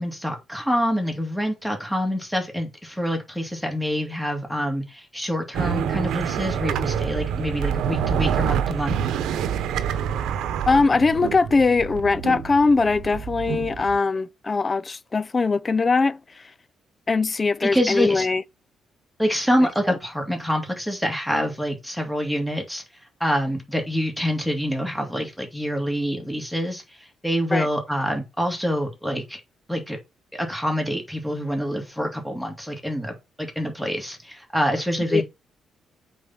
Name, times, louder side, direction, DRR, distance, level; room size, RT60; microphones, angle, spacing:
voice 1, 0.0-9.0 17.6-18.3 19.2-22.8 23.2-29.4 29.7-30.0 30.3-35.2, equal, ahead, 2.5 m, -26 dB
sound 1, 5.5-14.0, right 8 dB, 80° right, 0.9 m, -27 dB
voice 2, 10.7-16.5 17.1-18.4 19.9-20.0 27.5-27.7 35.1-35.2, left 4 dB, 30° left, 0.5 m, -21 dB
8.3 x 4.3 x 5.8 m
cardioid pair, 90°, 0 cm